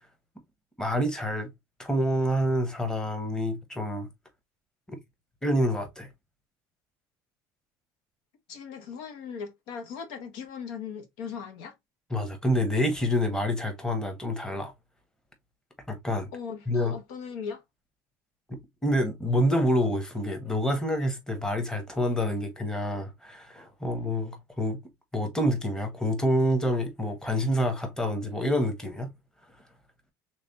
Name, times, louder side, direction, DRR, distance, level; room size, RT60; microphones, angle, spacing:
voice 1, 0.8-1.5 1.8-4.1 5.4-6.1 12.1-14.7 15.9-16.3 16.7-16.9 18.5-24.8 25.1-29.1, equal, 10° left, 1.0 m, -27 dB
voice 2, 8.5-11.7 16.3-17.6, left 6 dB, 80° left, 0.9 m, -38 dB
3.4 x 3.2 x 2.7 m
cardioid pair, 120°, 8 cm